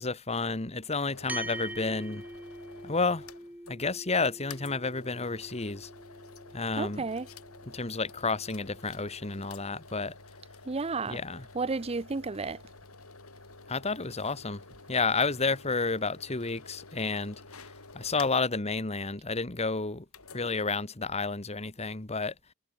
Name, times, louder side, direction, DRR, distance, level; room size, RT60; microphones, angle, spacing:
voice 1, 0.0-2.2 2.8-3.2 3.7-5.9 6.5-7.0 7.7-10.1 11.1-11.4 13.7-14.6 14.9-17.4 17.9-20.0 20.3-22.3, left 4 dB, 30° left, 1.6 m, -31 dB
sound 1, 1.1-3.8 4.1-4.2 4.5-18.6 20.1-20.6, left 3 dB, 80° left, 7.7 m, -50 dB
sound 2, 1.3-10.0, right 1 dB, 10° right, 5.1 m, -45 dB
voice 2, 6.8-7.3 10.7-11.2 11.5-12.6, right 3 dB, 30° right, 0.6 m, -32 dB
head